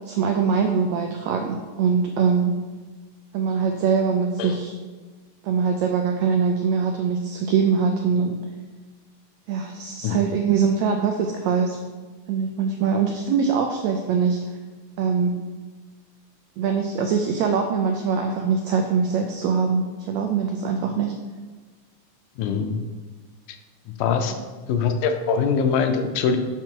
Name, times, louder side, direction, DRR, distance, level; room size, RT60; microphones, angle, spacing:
voice 1, 0.1-2.6 3.3-4.7 5.4-8.4 9.5-11.8 12.3-14.4 15.0-15.4 16.6-21.2, right 6 dB, 85° right, 4 dB, 1.5 m, -23 dB
voice 2, 22.4-22.8 24.0-24.3 24.7-26.4, left 6 dB, 80° left, 6 dB, 2.2 m, -22 dB
6.0 x 5.9 x 4.5 m, 1.4 s
omnidirectional pair, 3.7 m